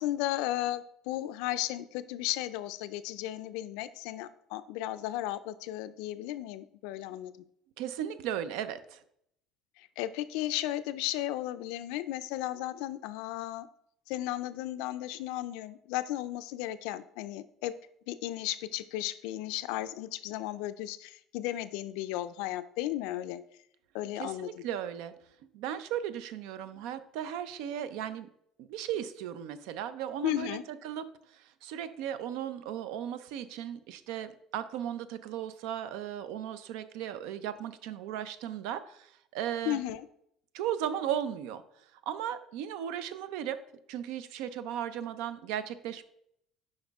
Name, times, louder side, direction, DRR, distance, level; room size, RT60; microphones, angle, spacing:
voice 1, 0.0-7.3 9.8-13.7 14.1-17.7 18.1-23.4 23.9-24.6 30.2-30.6 39.7-40.0, left 14 dB, 90° left, 12 dB, 0.4 m, -35 dB
voice 2, 7.8-9.0 24.2-25.1 25.5-28.3 28.6-39.8 40.5-43.6 43.9-46.0, right 10 dB, 80° right, 13 dB, 0.5 m, -36 dB
7.8 x 5.3 x 3.5 m, 0.73 s
cardioid pair, 165°, 0 cm